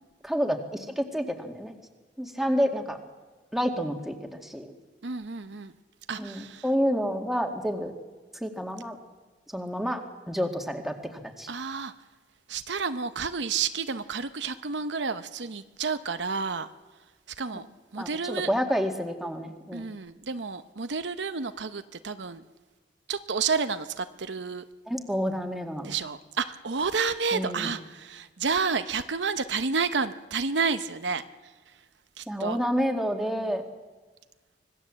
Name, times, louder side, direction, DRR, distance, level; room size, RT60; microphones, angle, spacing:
voice 1, 0.2-0.6 1.0-1.7 2.2-3.0 3.5-4.7 6.2-7.9 8.4-9.0 9.5-10.0 10.3-10.9 11.4-11.5 18.0-19.8 24.9-25.9 27.3-27.7 32.3-33.7, equal, ahead, 3 dB, 2.2 m, -29 dB
voice 2, 5.0-5.7 6.1-6.6 11.5-11.9 12.5-16.7 17.4-17.7 17.9-18.5 19.7-22.4 23.1-24.6 25.8-31.2 32.2-32.6 33.3-33.5, right 5 dB, 75° right, 10 dB, 0.9 m, -30 dB
25.5 x 19.0 x 7.6 m, 1.3 s
head